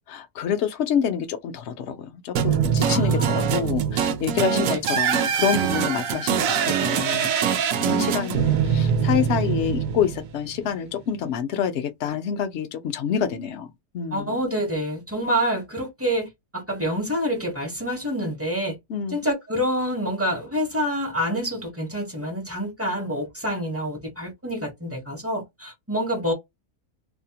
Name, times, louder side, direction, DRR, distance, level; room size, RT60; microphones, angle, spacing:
voice 1, 0.1-14.3 18.9-19.2, left 8 dB, 65° left, 0.7 m, -27 dB
sound 1, 2.4-10.6, right 7 dB, 70° right, 0.9 m, -23 dB
voice 2, 2.8-3.4 4.5-4.8 7.9-8.5 14.1-18.8 19.1-26.3, equal, 15° right, 0.5 m, -27 dB
2.7 x 2.0 x 2.7 m
omnidirectional pair, 1.6 m